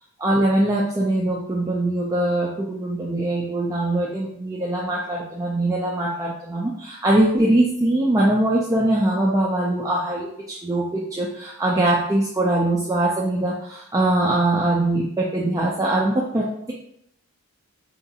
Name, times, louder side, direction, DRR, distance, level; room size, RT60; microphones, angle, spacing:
voice 1, 0.2-16.7, right 1 dB, 15° right, -4 dB, 0.4 m, -22 dB
4.6 x 2.5 x 2.7 m, 0.72 s
head